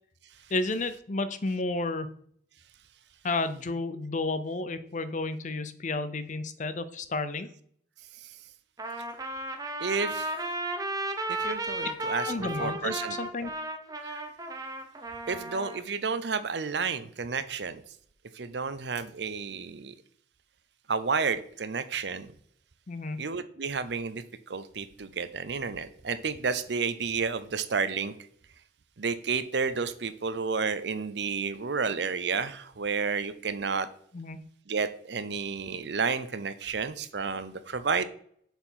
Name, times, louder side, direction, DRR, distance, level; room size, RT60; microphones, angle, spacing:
voice 1, 0.5-2.1 3.2-7.5 12.3-13.5 22.9-23.3 34.1-34.4, left 3 dB, 40° left, 13 dB, 0.6 m, -31 dB
Trumpet, 8.8-15.8, right 1 dB, 20° right, 0.8 m, -34 dB
voice 2, 9.8-10.3 11.3-13.2 14.0-14.2 15.3-17.8 18.3-19.9 20.9-22.3 23.2-28.1 29.0-33.9 34.7-38.0, right 5 dB, 65° right, 13 dB, 0.6 m, -31 dB
7.0 x 4.4 x 5.7 m, 0.62 s
head